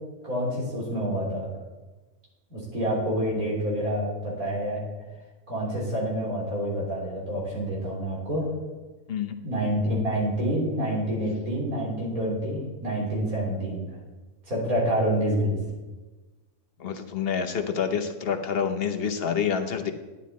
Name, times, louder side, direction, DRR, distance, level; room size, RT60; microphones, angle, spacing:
voice 1, 0.2-1.5 2.5-4.8 5.5-8.5 9.4-13.8 14.5-15.6, equal, 90° right, -4 dB, 4.0 m, -27 dB
voice 2, 16.8-19.9, left 7 dB, 50° left, 7 dB, 1.0 m, -27 dB
11.5 x 9.3 x 4.2 m, 1.2 s
omnidirectional pair, 1.5 m